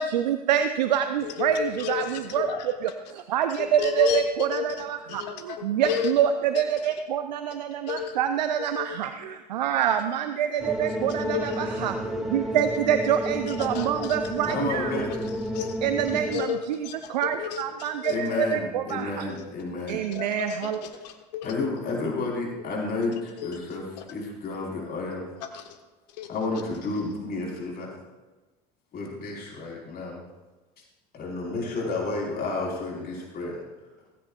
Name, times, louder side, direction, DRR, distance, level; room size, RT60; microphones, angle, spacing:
voice 1, 0.0-2.5 3.1-15.1 15.8-16.8 17.1-19.3 19.9-20.8, right 9 dB, 85° right, 0.6 m, -26 dB
voice 2, 1.2-2.7 3.5-6.1 6.5-6.6 7.9-8.2 8.6-9.0 11.1-11.7 13.5-14.2 15.1-15.8 16.3-18.2 19.3-19.5 20.1-21.7 22.6-22.8 23.1-24.1 25.4-25.8 26.1-26.6, left 9 dB, 75° left, 1.5 m, -33 dB
sound 1, 10.6-16.3, equal, ahead, 2.3 m, -31 dB
voice 3, 14.5-15.1 18.1-20.0 21.4-23.8 24.1-25.2 26.3-27.9 28.9-30.2 31.1-33.6, left 3 dB, 45° left, 4.8 m, -31 dB
16.5 x 14.5 x 2.5 m
hypercardioid pair, 75°, 21 cm